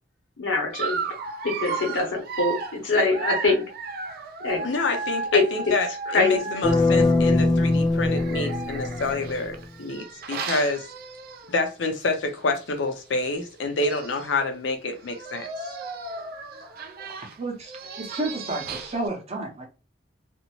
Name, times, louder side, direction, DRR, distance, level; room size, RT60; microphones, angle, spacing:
voice 1, 0.4-1.1 1.4-3.6 4.4-4.7 5.3-5.5 6.1-6.6, left 3 dB, 85° left, 1.0 m, -24 dB
Dog, 0.7-7.3 8.1-11.7 12.1-12.3 12.6-12.7 13.5-13.6 13.8-14.4 15.0-19.1, right 4 dB, 55° right, 0.4 m, -34 dB
voice 2, 4.6-10.9 11.5-15.5, left 2 dB, 70° left, 0.5 m, -28 dB
sound 1, 6.6-9.6, left 2 dB, 20° left, 0.3 m, -22 dB
voice 3, 17.1-19.7, right 2 dB, 35° right, 0.8 m, -32 dB
2.6 x 2.0 x 3.0 m
head